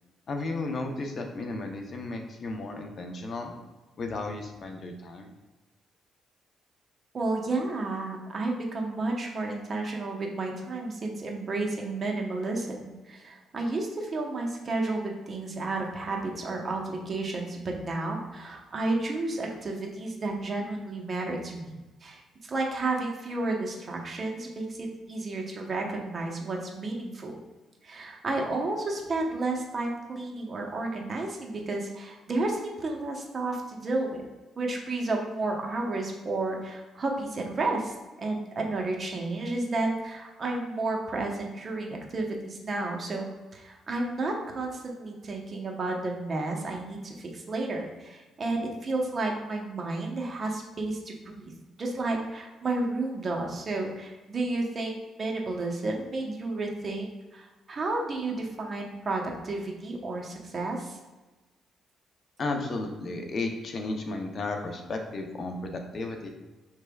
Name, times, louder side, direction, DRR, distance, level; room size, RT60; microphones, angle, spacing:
voice 1, 0.3-3.5 4.0-5.3 62.4-66.3, left 2 dB, 50° left, 4 dB, 0.6 m, -34 dB
voice 2, 7.1-22.2 22.5-27.4 27.8-34.2 34.6-61.0, right 2 dB, 40° right, 0 dB, 0.8 m, -32 dB
5.8 x 3.2 x 2.3 m, 1.2 s
cardioid pair, 90°, 0 cm